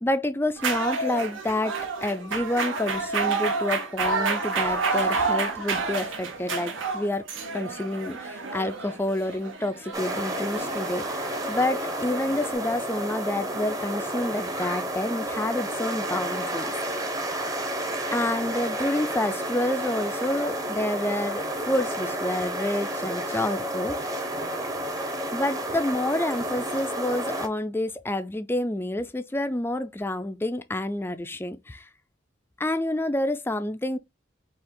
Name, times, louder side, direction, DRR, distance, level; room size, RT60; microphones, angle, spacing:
voice 1, 0.0-7.2 7.5-17.1 18.1-24.3 25.3-31.9 32.6-34.0, left 1 dB, 10° left, 0.4 m, -28 dB
sound 1, 0.6-12.5, right 4 dB, 80° right, 1.1 m, -30 dB
sound 2, 9.9-27.5, right 1 dB, 20° right, 0.8 m, -31 dB
4.3 x 2.8 x 3.7 m
head